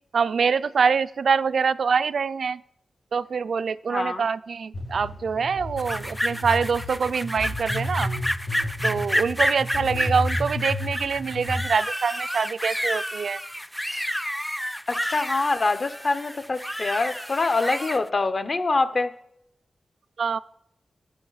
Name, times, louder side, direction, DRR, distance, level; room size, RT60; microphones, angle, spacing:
voice 1, 0.1-2.6 3.1-8.1 8.8-13.4 20.2-20.4, right 5 dB, 75° right, 16 dB, 0.3 m, -25 dB
voice 2, 3.9-4.2 14.9-19.1, left 3 dB, 50° left, 11 dB, 0.7 m, -25 dB
sound 1, 4.7-11.6, left 1 dB, 85° left, 5.4 m, -32 dB
sound 2, 5.8-18.0, equal, 5° left, 0.3 m, -30 dB
12.5 x 9.0 x 4.0 m, 0.75 s
wide cardioid pair, 80°, 0 cm